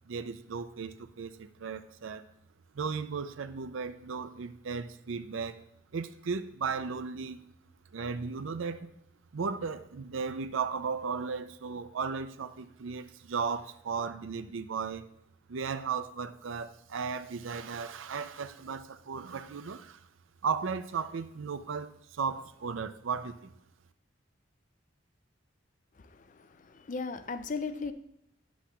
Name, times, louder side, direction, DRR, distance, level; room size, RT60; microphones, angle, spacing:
voice 1, 0.1-2.2 2.7-5.6 5.9-7.5 7.9-8.9 9.3-15.1 15.5-20.0 20.4-23.5, right 5 dB, 85° right, 12 dB, 0.5 m, -35 dB
voice 2, 26.0-27.9, left 4 dB, 40° left, 11 dB, 0.4 m, -37 dB
10.0 x 8.1 x 2.4 m, 0.80 s
head